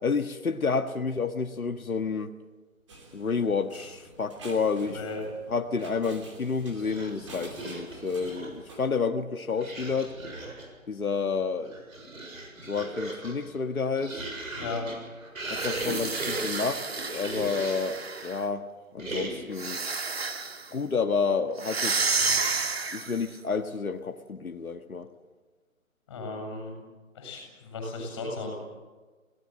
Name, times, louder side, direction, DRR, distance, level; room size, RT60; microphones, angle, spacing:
voice 1, 0.0-2.3 3.1-5.0 5.5-10.1 10.9-11.7 12.6-14.2 15.5-18.7 18.9-19.8 20.7-22.2 22.9-25.1, left 5 dB, 80° left, 6 dB, 1.7 m, -30 dB
sound 1, 2.9-8.9, right 2 dB, 20° right, 2.9 m, -47 dB
voice 2, 4.9-5.2 14.6-14.9 26.1-26.7 27.1-28.5, left 3 dB, 15° left, 2 dB, 7.4 m, -35 dB
sound 2, 6.7-8.7 9.5-10.8 11.5-18.0 19.0-19.7, right 2 dB, 75° right, 7.0 m, -38 dB
sound 3, 15.5-18.4 19.5-20.7 21.6-23.3, right 4 dB, 45° right, 1.8 m, -30 dB
25.0 x 18.5 x 7.6 m, 1.3 s
hypercardioid pair, 175°, 42 cm